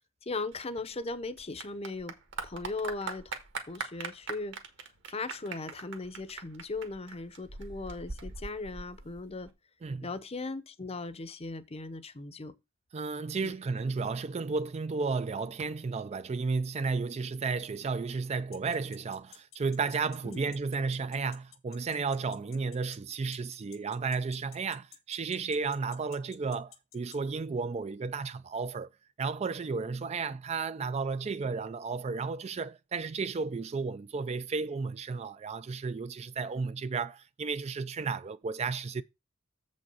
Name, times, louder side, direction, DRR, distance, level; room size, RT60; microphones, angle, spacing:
voice 1, 0.2-2.1 2.4-3.2 3.7-4.6 5.1-9.5 10.0-12.5 13.4-13.5 20.2-20.4, left 3 dB, 30° left, 0.8 m, -38 dB
Clapping / Applause, 0.5-9.5, right 4 dB, 60° right, 1.6 m, -42 dB
voice 2, 12.9-28.9 29.2-39.0, right 4 dB, 30° right, 0.4 m, -33 dB
sound 1, 18.5-27.2, left 11 dB, 90° left, 1.3 m, -52 dB
7.4 x 5.3 x 5.5 m
head